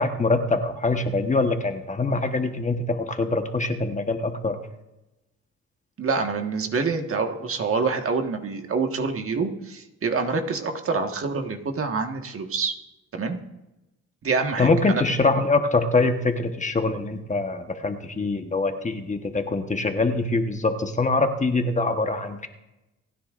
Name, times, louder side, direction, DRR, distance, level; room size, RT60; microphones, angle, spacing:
voice 1, 0.0-4.5 14.6-22.5, left 3 dB, 25° left, 6 dB, 1.2 m, -24 dB
voice 2, 6.0-12.7 13.1-13.4 14.2-15.0, right 4 dB, 45° right, 4 dB, 1.6 m, -26 dB
28.5 x 10.0 x 2.6 m, 0.96 s
cardioid pair, 90°, 30 cm